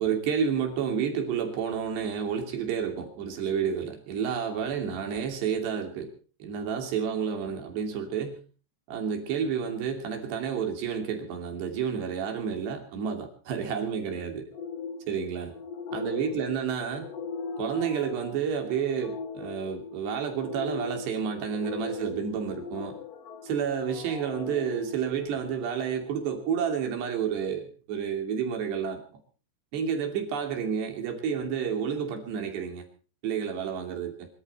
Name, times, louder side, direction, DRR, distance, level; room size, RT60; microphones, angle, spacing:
voice 1, 0.0-6.1 6.4-8.4 8.9-14.5 15.1-15.5 15.9-17.1 17.6-23.0 23.4-29.0 29.7-32.8 33.2-34.3, right 7 dB, 70° right, 4 dB, 4.9 m, -30 dB
sound 1, 14.5-25.8, left 4 dB, 55° left, 1.9 m, -40 dB
24.5 x 13.0 x 4.4 m, 0.38 s
omnidirectional pair, 5.1 m